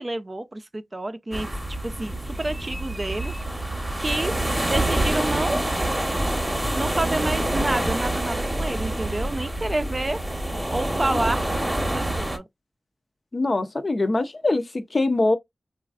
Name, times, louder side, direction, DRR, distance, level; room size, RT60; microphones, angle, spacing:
voice 1, 0.0-1.5 1.8-3.3 4.0-4.3 4.7-5.6 6.7-10.2 10.7-12.5, right 2 dB, 35° right, 0.4 m, -29 dB
sound 1, 1.3-12.4, right 1 dB, 15° right, 0.8 m, -26 dB
voice 2, 13.3-15.4, left 2 dB, 45° left, 0.5 m, -23 dB
3.1 x 2.4 x 2.3 m
cardioid pair, 55°, 0 cm